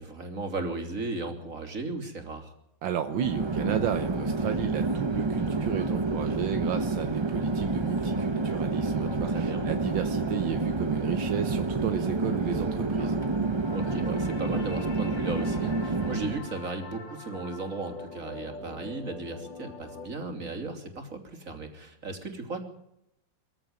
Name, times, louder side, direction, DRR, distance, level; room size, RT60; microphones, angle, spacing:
voice 1, 0.0-2.5 9.2-9.7 13.7-22.6, right 3 dB, 40° right, 5 dB, 3.6 m, -36 dB
voice 2, 2.8-13.2, right 9 dB, 75° right, 8 dB, 1.7 m, -33 dB
sound 1, 2.9-20.1, left 1 dB, 70° left, 3.7 m, -44 dB
Chatter / Fixed-wing aircraft airplane, 3.1-16.5, right 3 dB, 25° right, 0.6 m, -29 dB
22.5 x 15.0 x 9.3 m, 0.80 s
omnidirectional pair, 2.1 m